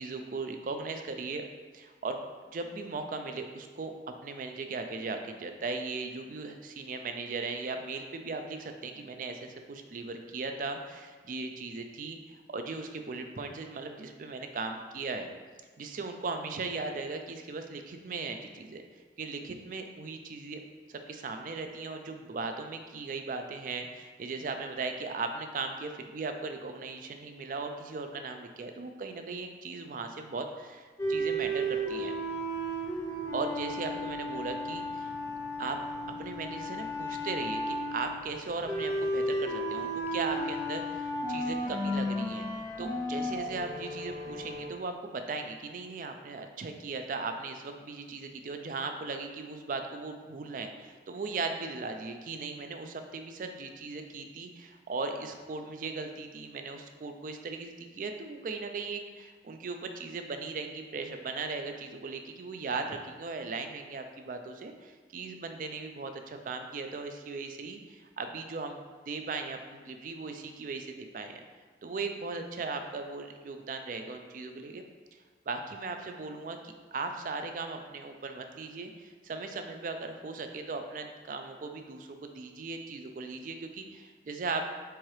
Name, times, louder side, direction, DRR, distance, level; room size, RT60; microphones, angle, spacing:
voice 1, 0.0-1.4 1.7-2.2 2.5-3.9 4.2-15.3 15.8-18.8 19.2-20.6 20.9-32.1 33.3-35.1 35.6-35.8 36.2-68.8 69.1-71.4 71.8-74.8 75.5-76.6 76.9-84.6, right 3 dB, 50° right, 6 dB, 0.4 m, -38 dB
sound 1, 31.0-44.7, equal, 20° left, 0.7 m, -34 dB
4.6 x 3.6 x 3.2 m, 1.4 s
head